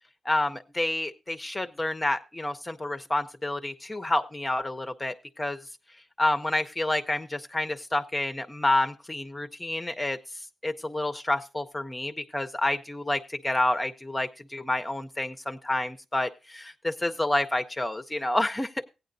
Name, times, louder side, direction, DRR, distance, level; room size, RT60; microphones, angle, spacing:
voice 1, 0.2-5.6 6.2-10.2 10.6-18.7, left 1 dB, 10° left, 7 dB, 0.5 m, -29 dB
16.5 x 9.3 x 2.6 m, 0.29 s
wide cardioid pair, 145°, 0 cm